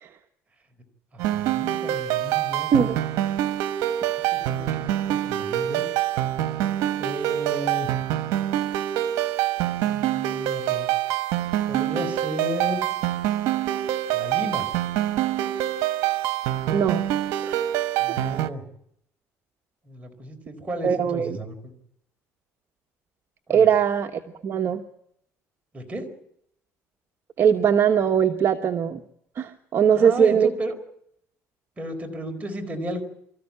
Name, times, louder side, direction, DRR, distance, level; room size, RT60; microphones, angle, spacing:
voice 1, 1.1-2.7 4.3-5.9 7.0-7.9 9.7-10.9 11.7-12.9 14.1-14.7 18.0-18.7 19.8-21.7 23.5-23.7 25.7-26.1 29.9-30.7 31.8-33.0, equal, 25° right, 4 dB, 4.4 m, -34 dB
sound 1, 1.2-18.5, right 13 dB, 85° right, 1.1 m, -25 dB
voice 2, 16.7-17.1 17.4-17.6 18.2-18.3 20.8-21.4 23.5-24.8 27.4-29.0 29.4-30.5, right 7 dB, 50° right, 4 dB, 1.2 m, -21 dB
24.5 x 14.5 x 8.6 m, 0.75 s
cardioid pair, 105°, 6 cm